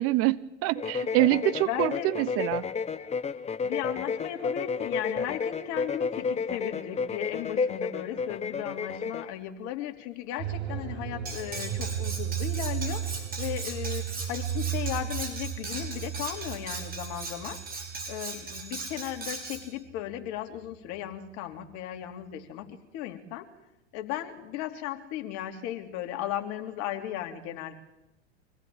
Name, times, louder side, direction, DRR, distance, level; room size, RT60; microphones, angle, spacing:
voice 1, 0.0-2.6, right 17 dB, 40° right, 18 dB, 0.9 m, -26 dB
sound 1, 0.8-9.3, left 5 dB, 20° left, 1.2 m, -31 dB
voice 2, 1.6-2.1 3.6-17.6 18.1-23.5 23.9-27.8, left 12 dB, 50° left, 5 dB, 3.3 m, -36 dB
sound 2, 10.4-20.3 20.5-20.6, right 10 dB, 65° right, 4.1 m, -35 dB
Cutlery silverware, 11.3-19.6, right 3 dB, 25° right, 6.6 m, -39 dB
25.0 x 17.0 x 8.7 m, 0.91 s
hypercardioid pair, 95°, 35 cm